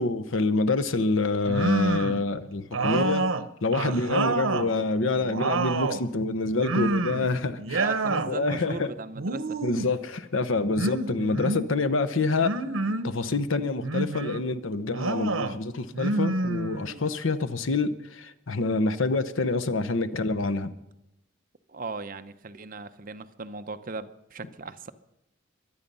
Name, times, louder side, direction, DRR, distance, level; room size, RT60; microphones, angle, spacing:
voice 1, 0.0-3.3 3.6-7.8 8.1-8.9 9.6-12.5 13.0-20.7, left 3 dB, 75° left, 11 dB, 0.9 m, -27 dB
sound 1, 1.4-2.2 2.7-4.7 5.1-6.0 6.6-7.3 7.6-8.3 9.1-9.9 10.8-11.7 12.4-13.1 13.8-14.4 14.9-15.5 15.9-17.0, right 3 dB, 85° right, 0.9 m, -28 dB
voice 2, 7.6-9.6 21.7-24.9, right 3 dB, 45° right, 10 dB, 0.8 m, -37 dB
23.0 x 8.8 x 5.5 m, 0.86 s
head